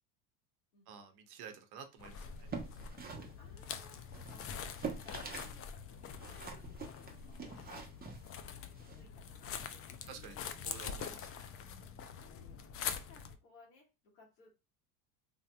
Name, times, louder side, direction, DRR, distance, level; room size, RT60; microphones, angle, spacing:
voice 1, 0.9-2.5 7.6-7.7 10.1-11.5, right 6 dB, 50° right, 6 dB, 0.9 m, -51 dB
sound 1, 2.0-13.4, left 7 dB, 30° left, 0.4 m, -45 dB
sound 2, 2.3-5.6 5.8-9.0, right 5 dB, 20° right, 0.8 m, -46 dB
voice 2, 3.4-7.9 8.9-10.1 10.4-10.5 12.1-12.7 13.0-14.6, left 3 dB, 75° left, -1 dB, 1.7 m, -62 dB
3.4 x 2.6 x 2.3 m, 0.28 s
hypercardioid pair, 80°, 48 cm